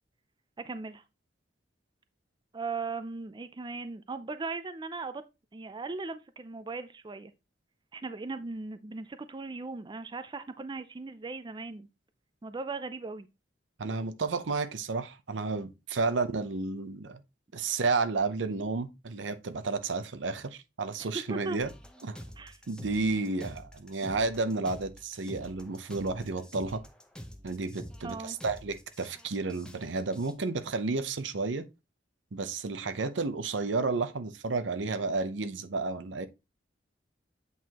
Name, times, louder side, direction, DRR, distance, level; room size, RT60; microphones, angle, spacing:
voice 1, 0.6-1.0 2.5-5.2 5.5-7.3 7.9-11.9 12.4-13.3 21.1-21.6 22.4-22.6 28.0-28.4, right 3 dB, 25° right, 0.4 m, -38 dB
voice 2, 13.8-17.2 17.5-21.7 22.0-22.2 22.7-26.8 27.4-31.7 32.3-36.3, right 3 dB, 85° right, 0.7 m, -31 dB
sound 1, 21.6-30.3, equal, 5° left, 0.8 m, -47 dB
8.0 x 4.7 x 2.9 m
head